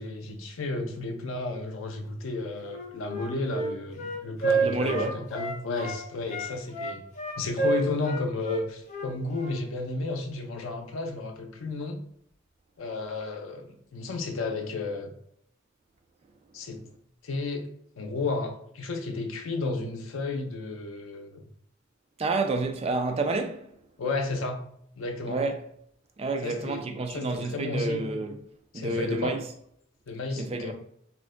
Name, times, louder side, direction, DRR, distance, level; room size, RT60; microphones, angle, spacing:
voice 1, 0.0-7.0 7.4-12.0 12.8-15.1 16.5-16.8 17.2-17.7 18.0-21.4 24.0-24.6 25.0-25.4 26.4-26.8 27.1-28.0 28.7-29.4 30.1-30.7, left 3 dB, 85° left, 0.5 m, -32 dB
Wind instrument woodwind instrument, 2.6-6.0 6.3-9.6, right 3 dB, 35° left, 0.5 m, -30 dB
voice 2, 4.6-5.2 22.2-23.7 25.3-25.6 26.2-28.4 28.7-29.4 30.4-30.7, right 3 dB, 30° right, 0.3 m, -29 dB
2.4 x 2.1 x 3.6 m
head